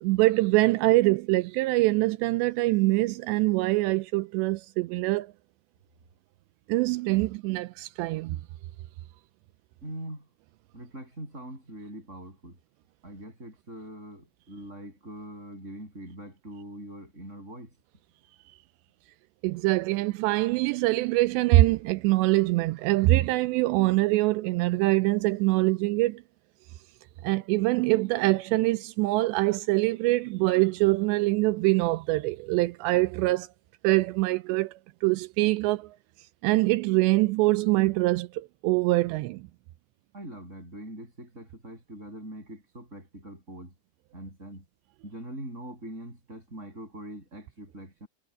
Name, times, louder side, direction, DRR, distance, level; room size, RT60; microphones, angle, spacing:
voice 1, 0.0-5.3 6.7-8.4 19.4-26.2 27.2-33.5 33.8-34.7 35.0-35.9 36.4-39.4, right 20 dB, 85° right, 2.8 m, -24 dB
voice 2, 9.8-10.3 10.7-12.6 13.0-17.7 40.1-43.7 44.1-44.6 45.0-48.1, right 1 dB, 15° right, 7.6 m, -42 dB
omnidirectional pair, 5.1 m